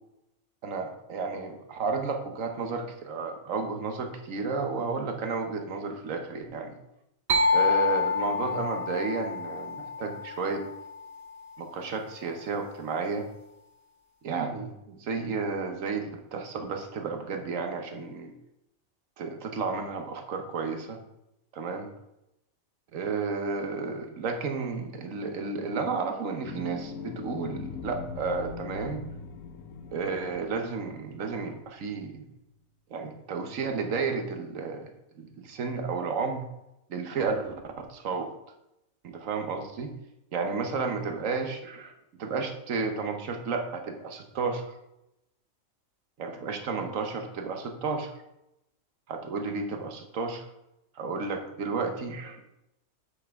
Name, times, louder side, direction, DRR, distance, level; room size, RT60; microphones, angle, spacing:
voice 1, 0.6-6.8 7.5-10.6 11.6-13.3 14.2-18.3 19.2-21.0 21.5-21.9 22.9-29.0 29.9-32.3 32.9-36.4 36.9-38.3 39.0-39.9 40.3-41.9 42.2-44.8 46.2-48.2 49.1-50.5 50.9-52.6, right 4 dB, 75° right, 5 dB, 1.3 m, -32 dB
sound 1, 7.3-11.0, left 3 dB, 55° right, 0.9 m, -27 dB
sound 2, 26.4-32.1, left 6 dB, 75° left, 1.0 m, -41 dB
7.7 x 6.2 x 3.5 m, 0.87 s
omnidirectional pair, 1.4 m